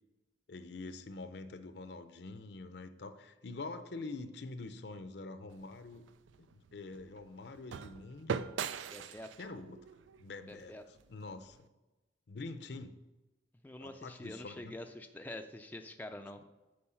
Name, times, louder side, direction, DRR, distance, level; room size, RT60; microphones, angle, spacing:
voice 1, 0.5-6.0 6.4-8.5 9.4-9.9 10.2-11.7 12.3-13.0 13.8-14.8, left 3 dB, 60° left, 10 dB, 0.6 m, -45 dB
sound 1, 5.5-11.6, right 6 dB, 90° right, 0.4 m, -43 dB
voice 2, 8.9-9.3 10.5-10.8 13.6-16.4, left 1 dB, 10° left, 5 dB, 0.4 m, -46 dB
8.6 x 4.6 x 5.7 m, 1.1 s
head